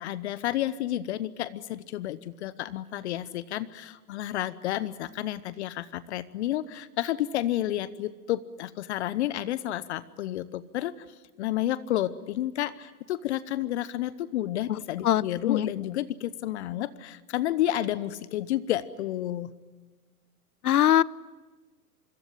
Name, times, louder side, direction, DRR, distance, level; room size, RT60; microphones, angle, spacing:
voice 1, 0.0-11.0 11.4-19.5, left 13 dB, 45° left, 17 dB, 1.0 m, -31 dB
voice 2, 15.0-15.7 20.6-21.0, left 11 dB, 70° left, 22 dB, 0.8 m, -22 dB
25.5 x 22.5 x 9.9 m, 1.3 s
hypercardioid pair, 125°, 46 cm